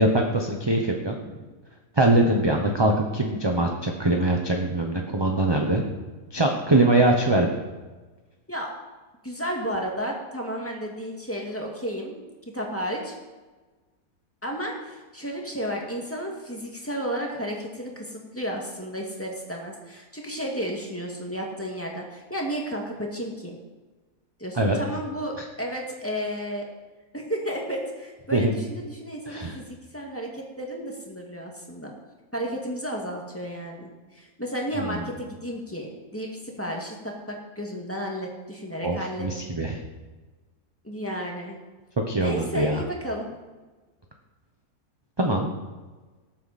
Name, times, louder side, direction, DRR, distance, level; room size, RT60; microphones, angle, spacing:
voice 1, 0.0-1.2 1.9-5.8 6.3-7.5 24.6-24.8 28.3-28.5 29.3-29.6 34.8-35.0 38.8-39.8 42.1-42.8 45.2-45.5, right 1 dB, 20° right, 2 dB, 0.8 m, -22 dB
voice 2, 9.2-12.2 12.5-13.2 14.4-23.6 24.4-26.7 27.1-31.9 32.3-39.3 40.8-41.6 42.2-43.3, equal, 10° left, -1 dB, 2.0 m, -32 dB
19.0 x 8.2 x 4.2 m, 1.3 s
omnidirectional pair, 1.7 m